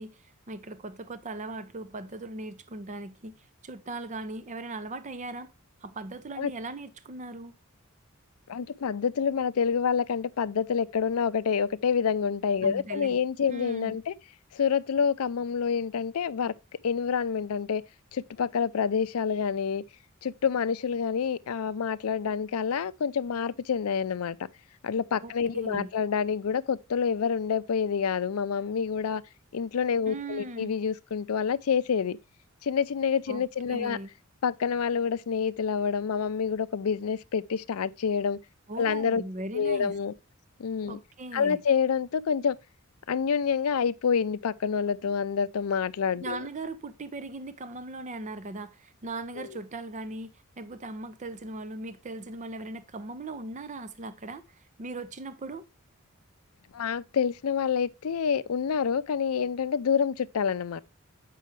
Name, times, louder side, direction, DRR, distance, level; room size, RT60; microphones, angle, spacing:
voice 1, 0.0-3.4 3.6-5.5 5.8-7.5 12.6-13.2 13.5-14.0 25.2-25.9 30.1-30.7 33.3-34.1 38.7-40.0 40.9-41.6 46.2-55.7, right 2 dB, 35° right, 0.6 m, -39 dB
voice 2, 8.5-14.1 14.5-16.5 16.8-17.8 18.1-19.8 20.2-24.4 24.8-29.2 29.5-32.2 32.6-34.0 34.4-38.4 38.8-39.2 39.5-40.1 40.6-41.0 41.3-42.6 43.1-46.4 49.4-49.5 56.7-60.8, left 6 dB, 80° left, 0.5 m, -27 dB
8.3 x 5.6 x 3.1 m
head